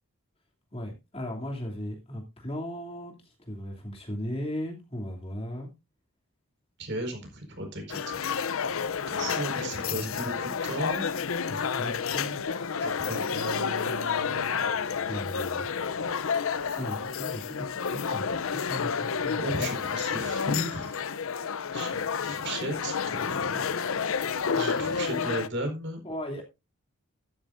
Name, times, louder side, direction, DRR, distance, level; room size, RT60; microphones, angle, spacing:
voice 1, 0.7-3.1 3.4-5.7 9.8-10.2 11.5-12.4 15.1-15.7 16.7-19.7 23.0-23.8 26.0-26.4, equal, 25° left, 0 dB, 2.7 m, -37 dB
voice 2, 6.8-8.4 9.1-11.1 12.8-14.8 19.3-21.0 21.7-23.5 24.1-26.0, right 1 dB, 55° right, 4 dB, 4.6 m, -36 dB
sound 1, 7.9-25.5, left 6 dB, 70° left, 0.6 m, -30 dB
13.0 x 12.5 x 2.6 m, 0.25 s
head